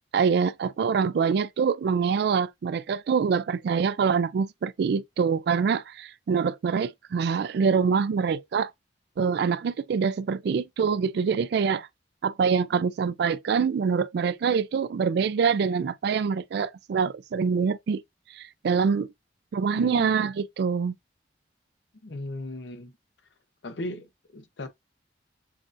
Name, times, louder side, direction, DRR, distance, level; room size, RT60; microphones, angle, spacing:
voice 1, 0.1-8.7 9.2-11.9 12.2-18.0 18.3-19.1 19.5-20.9, right 6 dB, 65° right, 0.3 m, -25 dB
voice 2, 19.8-20.1 22.0-23.0 23.6-24.7, left 1 dB, 80° left, 0.7 m, -37 dB
7.0 x 2.5 x 2.5 m
head